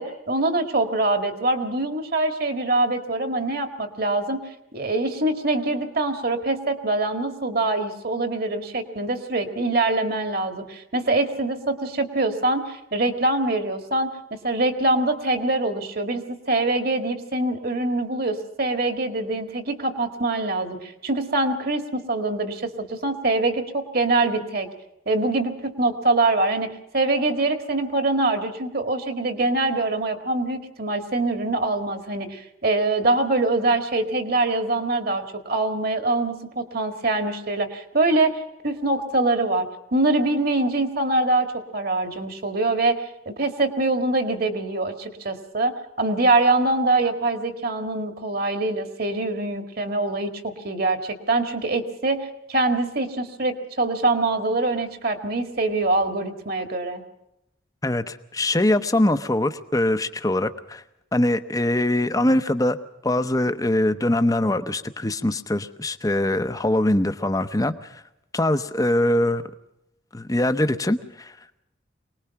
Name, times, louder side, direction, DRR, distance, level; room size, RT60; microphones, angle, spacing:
voice 1, 0.0-4.4 4.7-24.7 25.1-26.7 26.9-38.3 38.6-43.0 43.3-57.0, right 2 dB, 50° right, 7 dB, 1.9 m, -24 dB
voice 2, 57.8-60.8 61.1-62.8 63.0-68.0 68.3-69.4 70.1-71.4, left 1 dB, 20° left, 10 dB, 0.8 m, -22 dB
24.0 x 19.5 x 5.9 m, 0.86 s
head